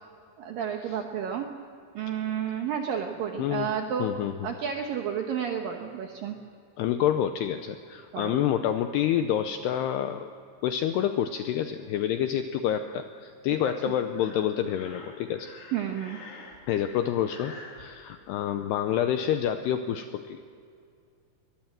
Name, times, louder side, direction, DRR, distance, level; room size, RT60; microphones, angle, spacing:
voice 1, 0.4-1.5 1.9-4.1 4.4-6.4 8.1-8.4 13.6-13.7 15.7-16.2, right 8 dB, 75° right, 3 dB, 2.0 m, -31 dB
voice 2, 3.4-3.7 4.0-4.3 6.8-10.3 10.6-15.5 16.7-20.4, left 10 dB, 85° left, 8 dB, 2.4 m, -28 dB
Breathing, 14.1-17.8, left 3 dB, 65° left, 5.1 m, -47 dB
23.5 x 20.0 x 7.5 m, 2.4 s
omnidirectional pair, 5.6 m